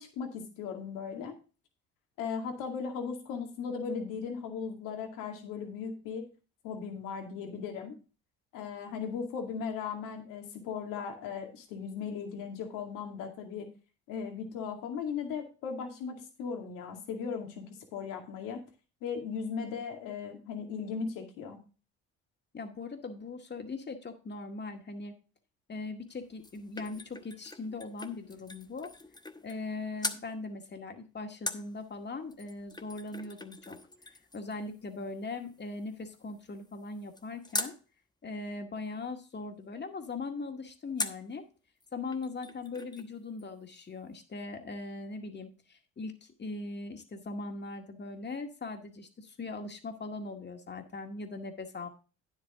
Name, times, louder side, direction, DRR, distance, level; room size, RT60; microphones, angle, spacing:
voice 1, 0.0-1.4 2.2-6.2 6.6-8.0 8.5-13.7 14.1-18.6 19.0-21.6, left 6 dB, 80° left, 3 dB, 2.4 m, -37 dB
voice 2, 22.5-25.1 25.7-28.9 29.4-33.8 34.3-37.7 38.2-41.4 41.9-51.9, left 3 dB, 35° left, 5 dB, 2.0 m, -40 dB
sound 1, 26.1-29.7 30.0-30.3 31.5-37.8 41.0-41.3 41.8-41.9 42.1-43.1 43.4-43.5, left 2 dB, 15° left, 1.0 m, -42 dB
9.5 x 8.0 x 3.7 m, 0.34 s
supercardioid pair, 65°, 32 cm